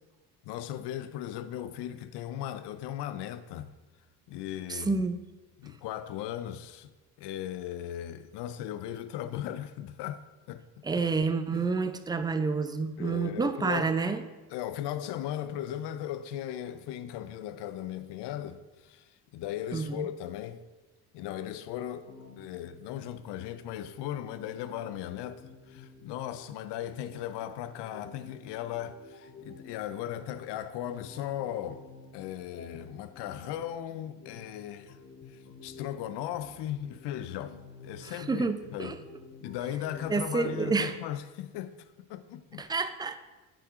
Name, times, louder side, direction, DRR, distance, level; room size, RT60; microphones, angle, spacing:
voice 1, 0.5-3.7 4.3-5.0 5.6-6.9 7.2-10.7 10.9-11.0 11.5-11.7 13.0-13.9 14.5-20.6 21.1-22.1 22.4-31.8 32.1-35.0 35.6-38.5 38.7-39.0 39.4-42.6, left 11 dB, 70° left, 0.5 m, -37 dB
voice 2, 4.7-5.2 10.8-14.2 19.7-20.1 38.0-39.0 40.1-40.9 42.6-43.2, right 4 dB, 10° right, 0.3 m, -29 dB
sound 1, 22.1-40.2, left 3 dB, 35° left, 0.8 m, -51 dB
9.0 x 4.9 x 2.5 m
supercardioid pair, 60°, 43 cm